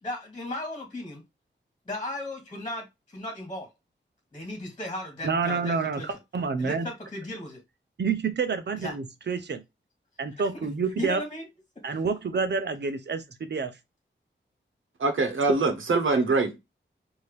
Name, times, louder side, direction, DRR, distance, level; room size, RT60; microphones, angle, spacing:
voice 1, 0.0-1.2 1.9-3.7 4.3-6.1 6.6-7.6 8.8-9.0 11.0-11.5, left 1 dB, 25° left, 2.0 m, -36 dB
voice 2, 5.2-6.9 8.0-9.6 10.2-11.2 11.8-13.8 15.5-15.6, right 5 dB, 60° right, 0.8 m, -28 dB
voice 3, 15.0-16.6, right 3 dB, 85° right, 1.1 m, -24 dB
4.8 x 2.9 x 3.2 m
wide cardioid pair, 125°, 20 cm